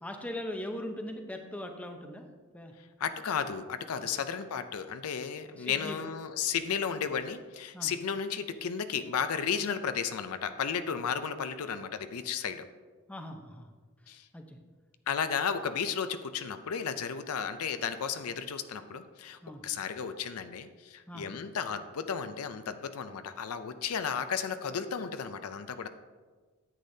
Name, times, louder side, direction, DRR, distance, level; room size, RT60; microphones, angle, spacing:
voice 1, 0.0-2.3 2.5-2.7 4.0-4.1 5.6-6.1 7.7-8.0 13.1-13.7 14.3-14.6 19.4-19.6 21.1-21.3, left 1 dB, 5° left, 4 dB, 0.6 m, -40 dB
voice 2, 3.0-12.6 14.1-14.3 15.1-25.9, left 7 dB, 75° left, 10 dB, 0.5 m, -34 dB
9.7 x 8.3 x 2.7 m, 1.4 s
head